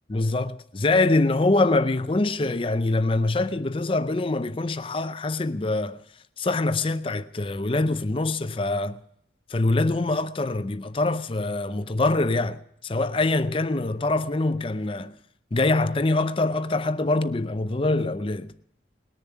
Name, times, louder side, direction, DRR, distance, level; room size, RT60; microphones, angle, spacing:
voice 1, 0.1-6.0 6.4-9.0 9.5-15.2 15.5-18.5, left 2 dB, 30° left, 0.5 m, -24 dB
20.0 x 7.0 x 9.3 m
head